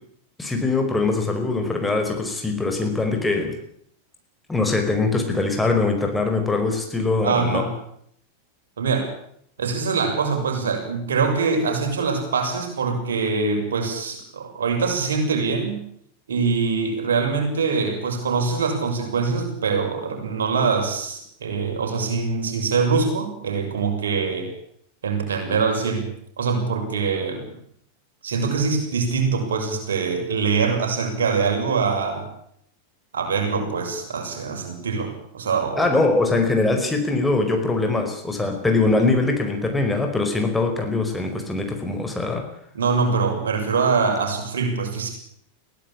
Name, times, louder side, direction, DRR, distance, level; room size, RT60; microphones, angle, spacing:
voice 1, 0.4-3.6 4.5-7.6 35.7-42.4, left 3 dB, 10° left, 4 dB, 4.9 m, -22 dB
voice 2, 7.2-7.7 8.8-9.1 9.6-15.8 16.3-24.5 25.0-26.1 26.4-27.5 28.2-32.3 33.1-35.8 42.7-45.1, right 5 dB, 65° right, 3 dB, 6.7 m, -23 dB
22.5 x 17.0 x 8.7 m, 0.70 s
figure-of-eight pair, 90°, 0 cm